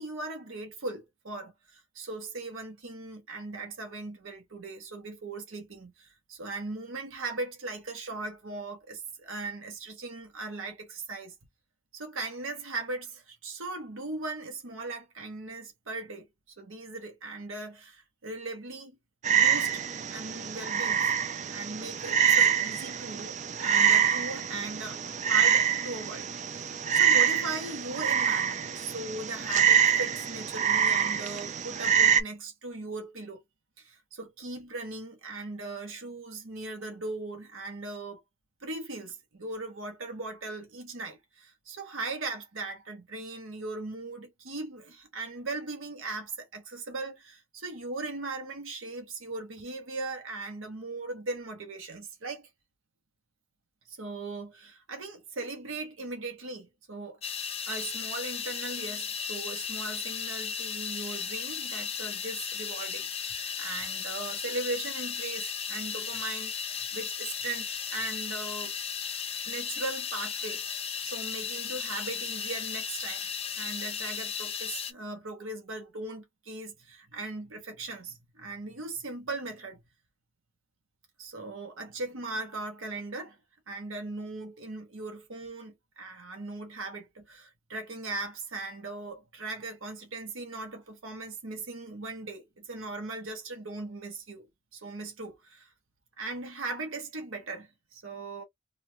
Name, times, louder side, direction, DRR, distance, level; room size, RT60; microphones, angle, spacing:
voice 1, 0.0-11.3 11.9-19.0 19.3-19.8 20.1-21.1 21.5-33.4 33.8-38.2 38.6-52.5 53.9-57.2 57.7-68.8 69.4-70.6 71.0-73.3 73.5-79.8 81.2-83.4 83.7-95.7 96.2-98.4, right 3 dB, 75° right, 1.0 m, -39 dB
Frog, 19.2-32.2, right 8 dB, 35° right, 0.4 m, -26 dB
sound 1, 57.2-74.9, left 7 dB, 30° left, 0.5 m, -35 dB
3.2 x 2.4 x 2.7 m
head